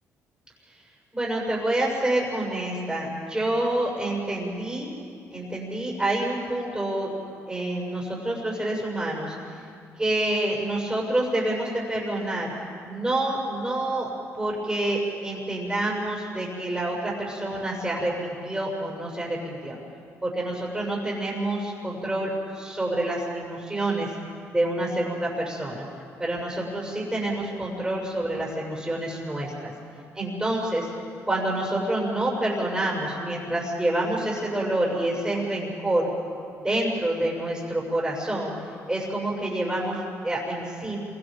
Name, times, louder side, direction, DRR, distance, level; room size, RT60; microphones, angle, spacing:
voice 1, 1.1-4.9 5.3-7.1 7.5-9.3 10.0-12.5 12.9-14.1 14.4-19.8 20.2-24.1 24.5-25.8 26.2-29.7 30.1-30.9 31.3-36.1 36.5-38.5 38.9-41.0, right 1 dB, 10° right, -4 dB, 7.4 m, -27 dB
28.0 x 25.0 x 5.3 m, 2.5 s
cardioid pair, 75°, 6 cm